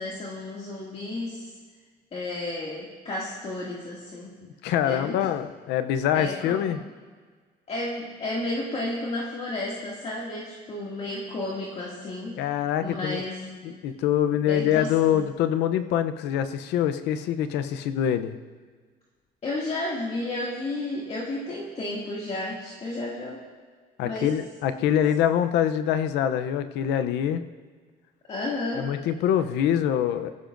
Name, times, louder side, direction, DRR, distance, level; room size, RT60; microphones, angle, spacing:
voice 1, 0.0-1.5 2.1-4.4 4.8-5.2 6.1-6.9 7.7-12.4 12.8-13.7 14.5-15.2 19.4-23.4 24.0-24.3 28.3-28.9, left 2 dB, 40° left, -5 dB, 2.4 m, -32 dB
voice 2, 4.4-6.8 12.4-13.2 13.6-18.4 24.0-27.4 28.7-30.3, left 10 dB, 85° left, 10 dB, 0.7 m, -25 dB
19.5 x 15.0 x 2.6 m, 1.5 s
cardioid pair, 110°, 17 cm